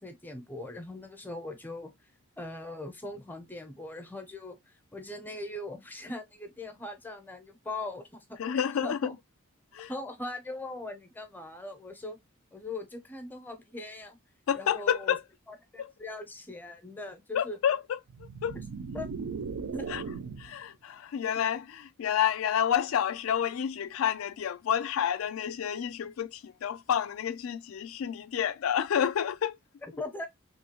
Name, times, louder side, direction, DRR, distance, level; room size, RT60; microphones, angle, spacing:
voice 1, 0.0-1.9 2.4-9.1 9.9-12.2 12.5-14.2 14.5-15.2 15.5-17.6 18.5-18.6 18.9-19.1 19.7-20.1 29.8-30.3, left 2 dB, 10° left, 0.5 m, -40 dB
voice 2, 8.4-9.1 9.7-9.9 14.5-15.2 15.8-15.9 17.3-18.0 18.4-18.6 19.9-20.0 20.4-29.6, left 9 dB, 75° left, 0.3 m, -29 dB
sound 1, 18.1-20.6, right 5 dB, 85° right, 0.4 m, -38 dB
2.9 x 2.7 x 2.8 m
head